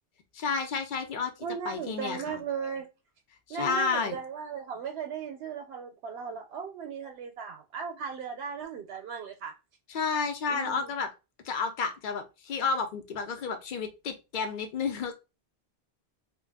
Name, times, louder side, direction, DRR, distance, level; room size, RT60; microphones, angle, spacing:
voice 1, 0.3-1.3 1.7-2.4 3.5-4.2 9.9-11.1 11.4-15.1, left 5 dB, 60° left, 0.7 m, -31 dB
voice 2, 1.4-2.9 3.5-9.5 10.5-10.9, right 6 dB, 80° right, 0.8 m, -37 dB
2.4 x 2.2 x 3.3 m
omnidirectional pair, 1.1 m